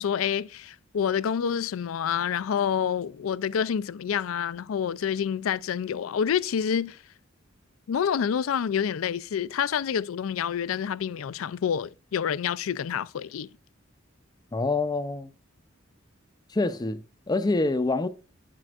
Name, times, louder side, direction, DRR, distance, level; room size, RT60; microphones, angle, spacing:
voice 1, 0.0-7.0 7.9-13.5, left 8 dB, 75° left, 0.4 m, -28 dB
voice 2, 14.5-15.3 16.5-18.1, left 3 dB, 20° left, 0.5 m, -26 dB
10.0 x 7.6 x 2.4 m
head